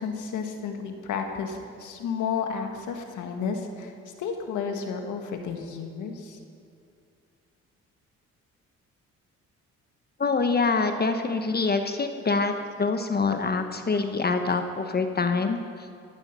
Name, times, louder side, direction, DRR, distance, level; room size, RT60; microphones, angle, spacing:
voice 1, 0.0-3.9 4.2-6.4, left 6 dB, 80° left, 5 dB, 1.8 m, -32 dB
voice 2, 10.2-15.6, left 4 dB, 30° left, 7 dB, 1.0 m, -25 dB
16.5 x 11.5 x 5.5 m, 2.4 s
cardioid pair, 90°, 30 cm